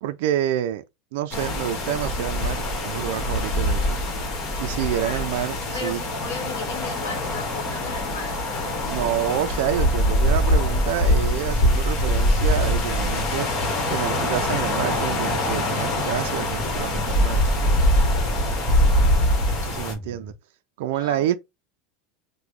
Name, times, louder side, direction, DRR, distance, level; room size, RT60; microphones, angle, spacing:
voice 1, 0.0-0.8 1.1-4.0 4.6-6.0 8.9-13.5 13.9-17.4 19.5-20.3 20.8-21.3, right 11 dB, 70° right, 0.3 m, -28 dB
sound 1, 1.3-19.9, left 1 dB, 40° left, 0.9 m, -23 dB
voice 2, 4.8-5.3 5.7-8.4 12.9-13.4 20.9-21.4, left 5 dB, 80° left, 1.0 m, -36 dB
sound 2, 9.9-20.3, left 1 dB, ahead, 0.4 m, -38 dB
3.0 x 2.1 x 3.6 m
supercardioid pair, 155°, 0 cm